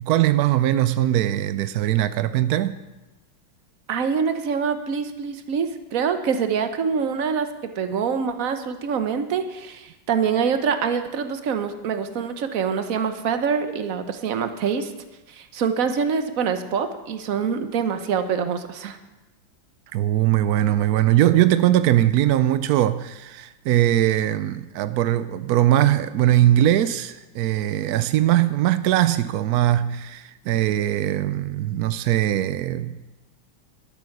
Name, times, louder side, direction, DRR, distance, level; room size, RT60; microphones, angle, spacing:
voice 1, 0.0-2.8 19.9-33.0, right 13 dB, 90° right, 0.8 m, -20 dB
voice 2, 3.9-7.5 7.8-14.9 15.3-19.0, right 6 dB, 50° right, 1.1 m, -25 dB
12.5 x 9.3 x 6.5 m
omnidirectional pair, 2.2 m